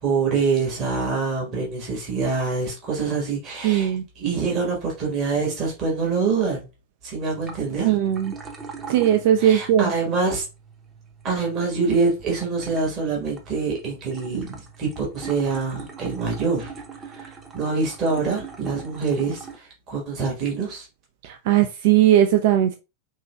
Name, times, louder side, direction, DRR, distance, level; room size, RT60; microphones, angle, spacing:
voice 1, 0.0-6.7 7.0-7.9 9.4-10.4 11.2-16.7 17.0-20.9, right 4 dB, 35° right, 1.3 m, -25 dB
voice 2, 3.6-4.1 7.8-8.3 8.9-9.9 21.2-22.7, right 11 dB, 50° right, 0.3 m, -18 dB
sound 1, 7.2-19.6, right 5 dB, 20° right, 0.8 m, -41 dB
4.6 x 2.8 x 2.3 m
figure-of-eight pair, 90°, 0 cm